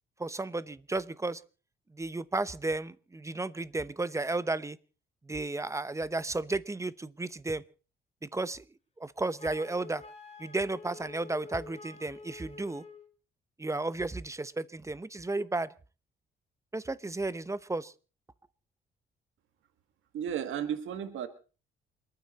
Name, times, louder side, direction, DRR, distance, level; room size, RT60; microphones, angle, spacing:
voice 1, 0.2-1.4 1.9-4.8 5.2-7.6 8.2-8.6 9.0-10.0 10.4-12.8 13.6-15.7 16.7-17.9, right 2 dB, 15° right, 16 dB, 0.9 m, -33 dB
Wind instrument woodwind instrument, 9.4-13.1, left 3 dB, 35° left, 2.9 m, -48 dB
voice 2, 20.1-21.3, right 9 dB, 80° right, 9 dB, 1.7 m, -33 dB
28.5 x 9.7 x 4.2 m, 0.37 s
cardioid pair, 90°, 20 cm